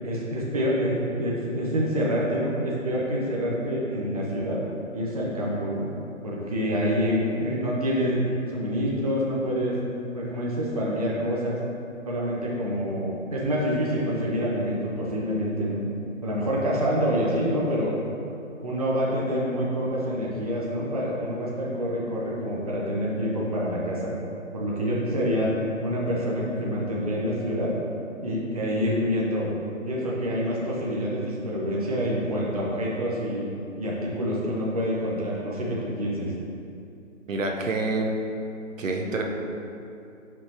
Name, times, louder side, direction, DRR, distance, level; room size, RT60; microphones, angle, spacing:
voice 1, 0.0-4.6 4.9-5.8 6.2-8.2 8.5-9.7 10.1-11.6 12.0-15.8 16.2-17.9 18.6-24.1 24.5-25.5 25.8-27.7 28.2-29.5 29.9-33.5 33.8-36.3, equal, 30° right, -5 dB, 0.7 m, -27 dB
voice 2, 37.3-38.2 38.8-39.2, right 2 dB, 70° right, 2 dB, 0.9 m, -27 dB
7.6 x 5.4 x 2.9 m, 2.7 s
hypercardioid pair, 175°, 40 cm